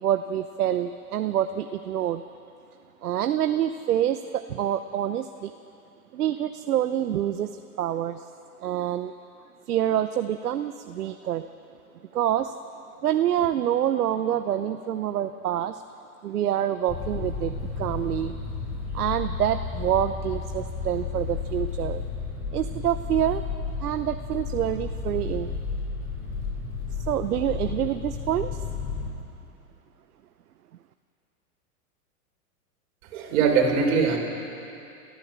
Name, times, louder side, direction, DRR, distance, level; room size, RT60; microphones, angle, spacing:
voice 1, 0.0-2.2 3.0-5.5 6.1-8.2 8.6-9.1 9.7-11.5 12.1-12.5 13.0-15.8 16.2-18.4 18.9-22.0 22.5-23.4 23.8-25.6 27.1-28.6, right 11 dB, 90° right, 9 dB, 0.9 m, -26 dB
sound 1, 16.9-29.1, left 5 dB, 30° left, 6.5 m, -32 dB
voice 2, 33.1-34.2, right 5 dB, 60° right, 2 dB, 4.8 m, -21 dB
29.0 x 14.5 x 7.4 m, 2.8 s
hypercardioid pair, 130°, 44 cm